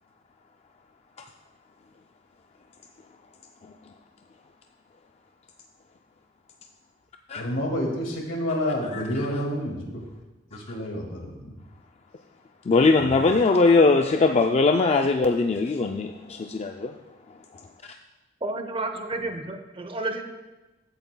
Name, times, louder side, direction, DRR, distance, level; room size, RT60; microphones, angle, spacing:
voice 1, 7.3-10.0 10.5-11.5 13.0-13.2, equal, 80° left, 1 dB, 2.0 m, -29 dB
voice 2, 12.7-16.9, left 3 dB, 35° left, 4 dB, 0.4 m, -20 dB
voice 3, 18.4-20.2, right 2 dB, 30° right, 7 dB, 0.7 m, -31 dB
14.5 x 8.4 x 2.2 m, 1.1 s
head